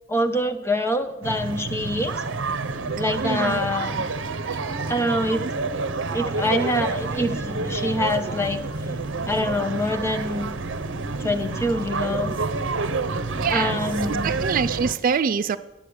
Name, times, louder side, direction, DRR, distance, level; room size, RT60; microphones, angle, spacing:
voice 1, 0.1-2.1 3.0-4.0 4.9-5.4 6.1-8.6 9.3-10.5 11.2-12.3 13.5-14.4, left 1 dB, 15° left, 6 dB, 0.9 m, -25 dB
sound 1, 1.2-14.9, right 3 dB, 75° right, 0.7 m, -28 dB
voice 2, 3.2-3.6 4.4-4.9 5.4-5.5 11.2-11.5 13.4-13.8 14.1-15.6, right 6 dB, 45° right, 13 dB, 0.4 m, -26 dB
10.5 x 6.5 x 8.6 m, 1.0 s
head